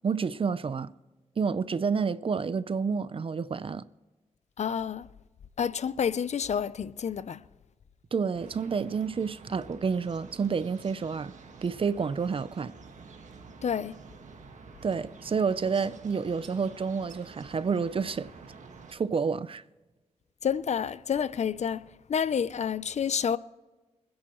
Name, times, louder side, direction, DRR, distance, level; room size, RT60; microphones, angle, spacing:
voice 1, 0.0-0.9 1.4-3.8 8.1-11.3 11.6-12.7 14.8-18.3 18.9-19.6, right 5 dB, 50° right, 0.5 m, -29 dB
voice 2, 4.6-5.1 5.6-7.4 13.6-14.0 20.4-21.8 22.1-23.4, left 7 dB, 65° left, 0.5 m, -29 dB
sound 1, 8.3-18.9, right 4 dB, 85° right, 1.6 m, -49 dB
26.5 x 10.0 x 3.1 m
wide cardioid pair, 95°, 12 cm